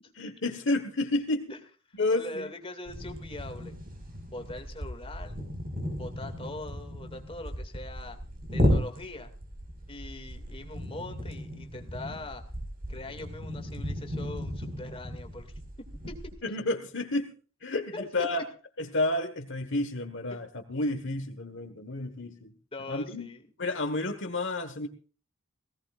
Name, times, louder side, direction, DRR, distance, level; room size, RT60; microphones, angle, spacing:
voice 1, 0.1-1.5 1.9-2.5 16.4-17.3 17.6-18.4 18.8-22.5 22.9-23.3 23.6-24.9, left 2 dB, 60° left, 7 dB, 1.5 m, -30 dB
voice 2, 2.1-3.7 4.3-5.4 6.0-8.2 8.5-9.3 9.9-12.4 12.9-15.6 16.1-16.3 17.9-18.3 20.3-20.4 22.7-23.5, left 2 dB, 25° left, 5 dB, 2.4 m, -42 dB
sound 1, 2.9-16.3, equal, 40° right, 5.3 m, -34 dB
18.5 x 17.0 x 2.5 m, 0.37 s
head